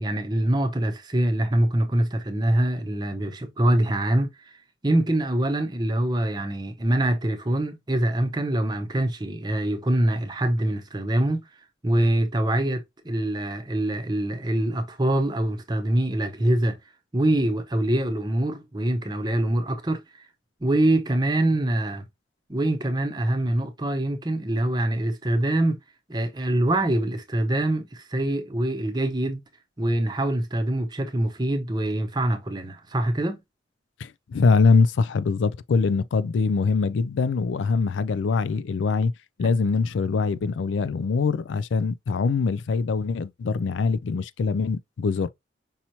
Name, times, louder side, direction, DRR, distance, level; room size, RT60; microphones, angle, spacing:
voice 1, 0.0-4.5 4.8-11.4 11.8-16.8 17.1-20.0 20.6-22.0 22.5-25.8 26.1-29.4 29.8-33.4 39.4-39.5, right 1 dB, 20° right, 0.7 m, -24 dB
voice 2, 34.0-39.1 39.4-45.3, left 4 dB, 85° left, 0.4 m, -23 dB
5.5 x 3.0 x 2.7 m
head